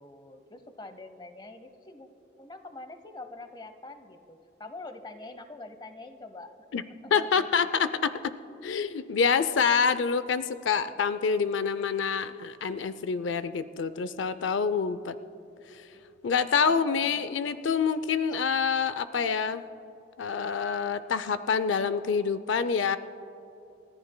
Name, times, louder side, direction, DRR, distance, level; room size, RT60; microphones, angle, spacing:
voice 1, 0.0-2.1 2.4-7.5 15.9-16.0 16.6-17.5 18.3-18.7, left 2 dB, 25° left, 9 dB, 0.8 m, -45 dB
voice 2, 7.1-8.3 8.6-15.2 15.7-15.8 16.2-19.6 20.2-23.0, left 6 dB, 90° left, 13 dB, 0.5 m, -27 dB
30.0 x 14.0 x 2.2 m, 2.9 s
head